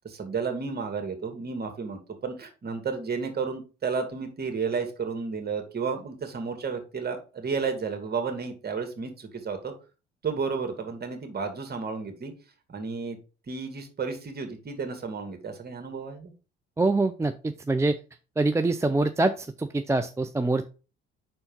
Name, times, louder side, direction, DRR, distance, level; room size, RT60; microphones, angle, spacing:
voice 1, 0.0-9.7 10.2-12.3 12.7-13.2 13.5-16.3, right 5 dB, 35° right, 5 dB, 2.1 m, -32 dB
voice 2, 16.8-18.0 18.4-20.7, right 2 dB, 10° right, 7 dB, 0.5 m, -25 dB
5.8 x 4.4 x 5.4 m, 0.33 s
hypercardioid pair, 65°, 30 cm